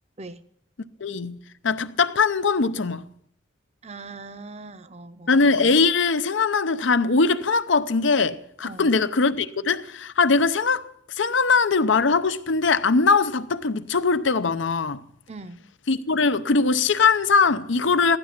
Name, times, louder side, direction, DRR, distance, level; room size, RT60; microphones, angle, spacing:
voice 1, 1.0-1.4 1.6-3.0 5.3-10.9 11.2-15.0 15.9-18.2, left 4 dB, 75° left, 0.7 m, -21 dB
voice 2, 3.8-5.6 8.6-9.0 15.3-15.6, right 3 dB, 35° right, 0.7 m, -41 dB
16.0 x 12.0 x 6.0 m
head